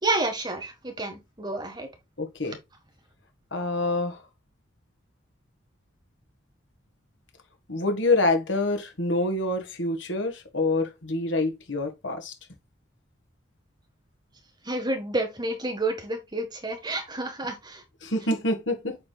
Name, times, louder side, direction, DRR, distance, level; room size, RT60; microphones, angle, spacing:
voice 1, 0.0-1.9 14.6-17.8, right 2 dB, 20° right, 1.6 m, -29 dB
voice 2, 2.2-2.6 3.5-4.2 7.7-12.3 18.0-19.0, left 2 dB, 75° left, 1.7 m, -26 dB
8.4 x 5.0 x 2.3 m
head